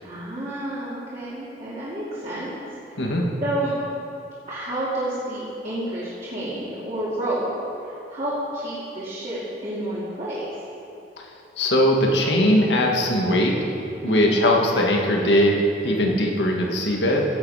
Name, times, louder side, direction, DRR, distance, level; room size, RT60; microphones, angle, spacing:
voice 1, 0.0-2.5 2.9-3.0 3.4-3.7 4.5-7.5 7.9-10.4 14.1-14.4, right 1 dB, 40° right, -9 dB, 2.5 m, -30 dB
voice 2, 11.6-13.6 14.0-15.6 15.8-17.3, left 1 dB, 85° left, 0 dB, 1.8 m, -20 dB
16.0 x 7.9 x 4.9 m, 2.8 s
head